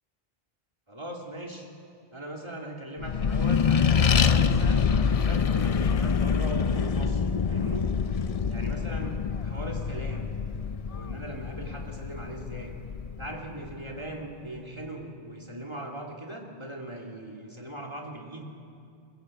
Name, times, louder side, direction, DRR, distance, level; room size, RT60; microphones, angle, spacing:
voice 1, 0.9-1.7 2.1-7.9 8.5-10.4 10.9-12.7 13.2-18.4, right 1 dB, 25° right, 0 dB, 2.8 m, -39 dB
Accelerating revving vroom, 3.0-13.9, left 6 dB, 40° left, 0.6 m, -26 dB
28.0 x 16.0 x 7.9 m, 2.5 s
omnidirectional pair, 1.1 m